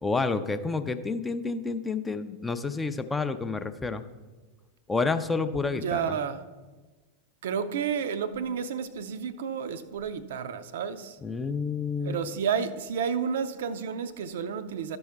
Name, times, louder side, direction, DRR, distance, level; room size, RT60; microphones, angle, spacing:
voice 1, 0.0-4.0 4.9-6.2 11.2-12.2, left 4 dB, 10° left, 0.4 m, -29 dB
voice 2, 5.7-6.4 7.4-11.2 12.0-15.0, right 7 dB, 60° right, 0.4 m, -31 dB
13.0 x 5.3 x 3.4 m
figure-of-eight pair, 90°, 0 cm